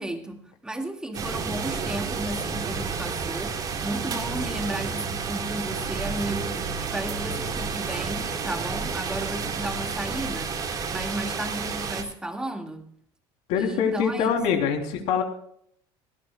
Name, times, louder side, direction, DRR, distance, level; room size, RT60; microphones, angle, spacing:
voice 1, 0.0-6.7 6.9-10.5 10.9-12.9 13.6-14.3, right 1 dB, 5° right, 4 dB, 2.1 m, -34 dB
sound 1, 1.1-12.0, right 5 dB, 35° right, 2.9 m, -30 dB
voice 2, 13.5-15.2, left 7 dB, 65° left, 3 dB, 3.4 m, -24 dB
18.5 x 16.5 x 2.3 m, 0.66 s
cardioid pair, 150°, 12 cm